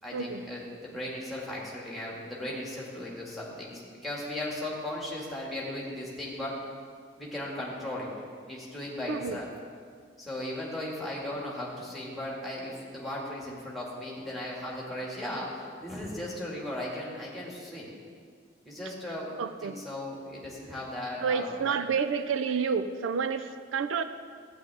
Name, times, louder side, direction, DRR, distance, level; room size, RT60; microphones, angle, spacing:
voice 1, 0.0-6.5 7.2-8.1 8.5-9.5 10.2-15.5 15.8-17.9 18.6-21.8, left 1 dB, ahead, -5 dB, 2.0 m, -37 dB
voice 2, 9.1-9.4 19.4-19.8 21.2-24.0, right 6 dB, 85° right, 11 dB, 0.4 m, -29 dB
12.5 x 8.9 x 3.5 m, 2.1 s
head